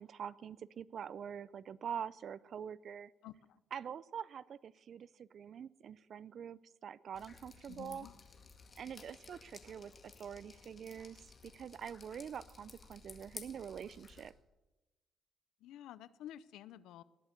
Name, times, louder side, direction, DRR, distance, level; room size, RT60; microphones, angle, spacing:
voice 1, 0.0-3.1 3.7-8.1 8.8-14.3, right 8 dB, 60° right, 20 dB, 0.5 m, -45 dB
voice 2, 3.2-3.6 7.7-8.1 15.6-17.0, left 12 dB, 85° left, 17 dB, 0.6 m, -51 dB
Drip, 7.1-14.3, left 4 dB, 40° left, 1.9 m, -55 dB
19.0 x 8.2 x 7.8 m, 1.1 s
cardioid pair, 90°, 0 cm